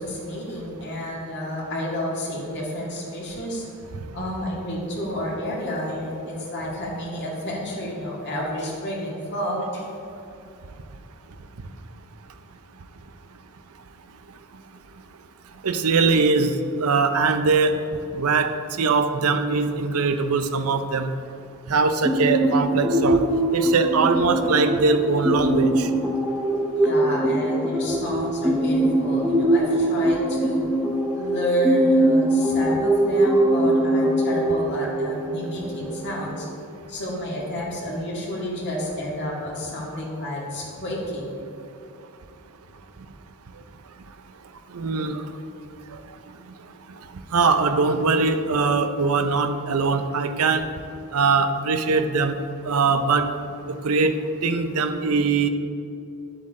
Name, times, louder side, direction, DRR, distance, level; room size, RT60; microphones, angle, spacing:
voice 1, 0.0-3.7 4.1-9.9 26.8-30.6 31.1-36.5 36.9-41.4, equal, 50° left, -3 dB, 2.2 m, -30 dB
voice 2, 15.6-17.8 18.1-18.5 18.8-21.1 21.7-23.2 23.5-25.9 44.7-45.2 45.9-46.0 47.3-50.6 51.1-52.3 52.6-53.3 53.7-55.5, right 4 dB, 75° right, 8 dB, 0.6 m, -21 dB
sound 1, 22.0-36.5, right 1 dB, 5° right, 0.7 m, -22 dB
10.5 x 7.9 x 3.7 m, 2.6 s
head